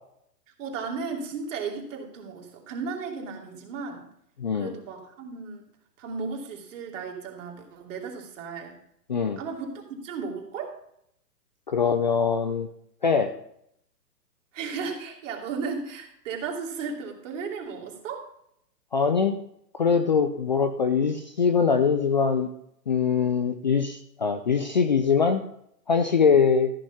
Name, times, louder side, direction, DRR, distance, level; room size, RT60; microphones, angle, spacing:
voice 1, 0.6-4.1 4.5-5.6 6.0-8.8 9.4-10.7 14.5-18.3, right 5 dB, 50° right, 1 dB, 2.9 m, -35 dB
voice 2, 4.4-4.7 9.1-9.4 11.7-12.7 13.0-13.3 18.9-19.3 19.8-22.5 22.9-25.4 25.9-26.7, left 6 dB, 30° left, 8 dB, 0.4 m, -22 dB
14.0 x 6.2 x 5.6 m, 0.71 s
hypercardioid pair, 135°, 49 cm